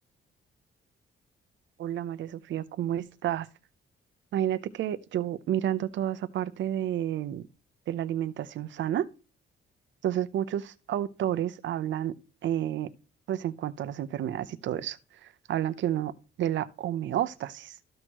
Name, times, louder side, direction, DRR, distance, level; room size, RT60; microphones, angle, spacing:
voice 1, 1.8-3.5 4.3-7.4 7.9-9.1 10.0-12.1 12.4-12.9 13.3-16.1 16.4-17.8, right 11 dB, 70° right, 0.6 m, -30 dB
14.0 x 6.2 x 3.0 m
cardioid pair, 140°, 20 cm